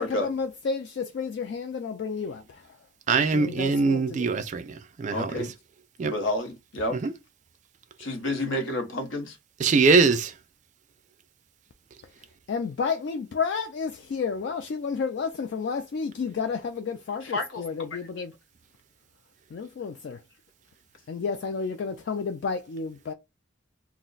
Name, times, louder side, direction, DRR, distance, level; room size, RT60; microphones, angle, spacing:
voice 1, 0.0-2.8 3.3-4.4 12.5-18.3 19.5-20.2 21.1-23.1, left 5 dB, 60° left, 0.3 m, -31 dB
voice 2, 3.1-5.5 6.0-6.1 6.9-7.1 9.6-10.3, right 4 dB, 40° right, 0.3 m, -23 dB
voice 3, 5.1-5.5 6.0-7.0 8.0-9.4 17.2-17.6, left 1 dB, 75° left, 0.8 m, -30 dB
2.3 x 2.1 x 3.7 m
head